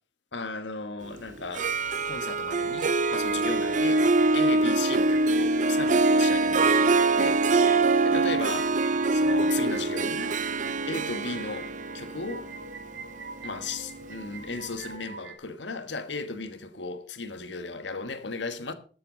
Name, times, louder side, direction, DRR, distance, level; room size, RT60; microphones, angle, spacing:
voice 1, 0.3-4.1 4.3-7.5 8.0-8.8 9.1-10.4 10.9-12.5 13.4-18.7, left 4 dB, 70° left, 1.4 m, -36 dB
Harp, 1.4-14.3, right 3 dB, 40° right, 0.6 m, -24 dB
sound 1, 2.5-15.4, right 3 dB, 60° right, 2.0 m, -43 dB
13.5 x 7.8 x 5.3 m
head